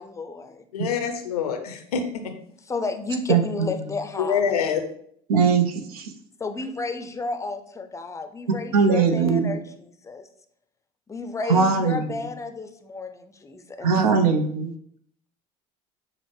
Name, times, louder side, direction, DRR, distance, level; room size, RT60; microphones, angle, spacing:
voice 1, 0.0-0.7 2.6-4.4 6.4-10.3 11.1-13.9, left 3 dB, 15° left, 8 dB, 0.5 m, -32 dB
voice 2, 0.7-2.2 4.2-4.8, left 7 dB, 80° left, 6 dB, 0.6 m, -25 dB
voice 3, 3.3-3.7 5.3-6.1 8.7-9.6 11.5-12.2 13.8-14.7, right 5 dB, 80° right, 6 dB, 0.5 m, -20 dB
6.0 x 2.0 x 3.2 m, 0.66 s
hypercardioid pair, 65°, 19 cm